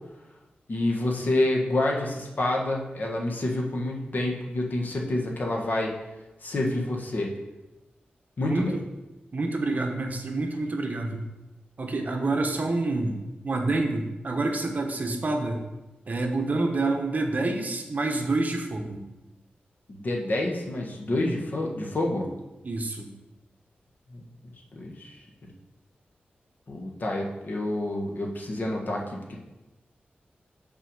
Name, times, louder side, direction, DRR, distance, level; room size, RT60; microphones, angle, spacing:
voice 1, 0.7-5.9 6.4-7.3 8.4-8.7 19.9-22.3 24.1-24.3 24.7-25.1 26.7-29.4, left 1 dB, 55° left, -1 dB, 1.4 m, -28 dB
voice 2, 9.3-11.2 11.8-13.2 13.4-15.6 16.1-19.0 22.6-23.1, right 2 dB, 50° right, 3 dB, 1.0 m, -27 dB
6.0 x 4.6 x 6.4 m, 1.0 s
wide cardioid pair, 95°, 4 cm